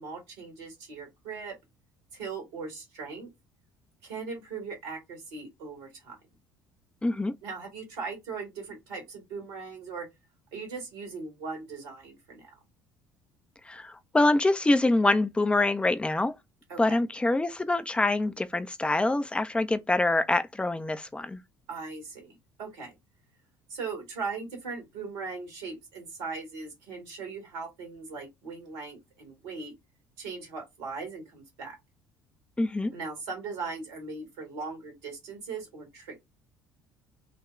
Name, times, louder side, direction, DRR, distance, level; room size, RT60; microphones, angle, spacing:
voice 1, 0.0-1.6 2.1-3.3 4.0-6.2 7.4-10.1 10.5-12.6 16.7-17.0 21.7-22.9 23.7-29.7 30.2-31.8 32.9-36.2, right 4 dB, 65° right, 1.7 m, -39 dB
voice 2, 7.0-7.3 13.7-16.3 16.8-21.4 32.6-32.9, left 2 dB, 10° left, 0.5 m, -25 dB
4.0 x 2.2 x 4.4 m
figure-of-eight pair, 55°, 10 cm